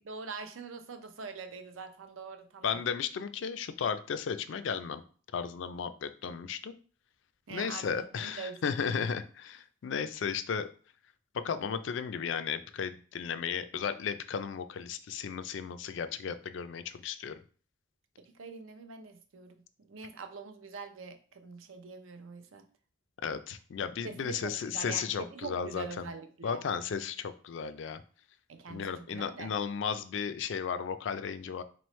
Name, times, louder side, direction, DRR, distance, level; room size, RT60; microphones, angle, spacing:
voice 1, 0.0-2.8 7.5-9.1 18.2-22.6 24.0-26.6 28.5-29.5, right 4 dB, 85° right, 7 dB, 0.6 m, -44 dB
voice 2, 2.6-5.0 5.3-6.7 7.5-10.7 11.4-17.4 23.2-26.1 26.4-28.0 28.7-31.6, left 6 dB, 65° left, 11 dB, 0.4 m, -34 dB
3.9 x 3.1 x 3.1 m, 0.40 s
head